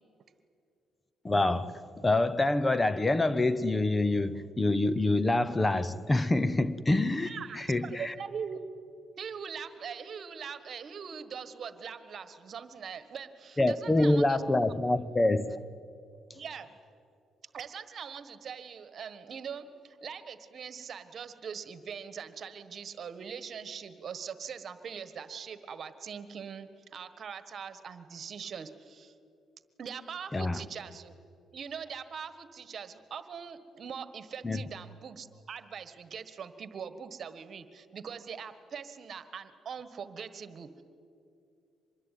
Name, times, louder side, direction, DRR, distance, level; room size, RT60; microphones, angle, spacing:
voice 1, 1.2-8.1 13.6-15.6 30.3-30.6 34.4-34.6, left 2 dB, 20° left, 0.8 m, -26 dB
voice 2, 7.2-8.6 9.2-14.4 16.3-16.7 17.5-29.1 29.8-31.1 31.5-40.8, right 7 dB, 55° right, 1.5 m, -42 dB
25.0 x 21.5 x 9.3 m
cardioid pair, 90°, 0 cm